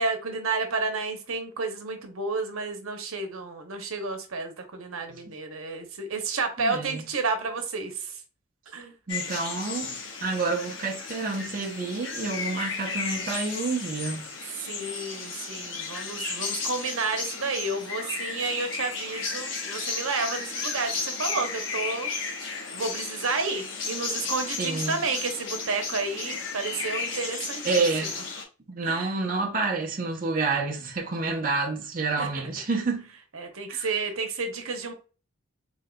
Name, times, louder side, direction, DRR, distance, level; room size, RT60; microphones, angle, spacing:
voice 1, 0.0-8.2 8.7-8.9 14.6-22.1 22.7-27.7 28.8-29.1 32.2-32.5 33.3-34.9, right 3 dB, 85° right, 0.9 m, -31 dB
voice 2, 6.6-7.0 9.1-14.2 24.6-25.0 27.6-28.1 28.7-33.1 33.7-33.9, right 3 dB, 40° right, 0.6 m, -29 dB
sound 1, 9.1-28.4, left 4 dB, 60° left, 1.0 m, -34 dB
3.8 x 3.8 x 2.2 m
head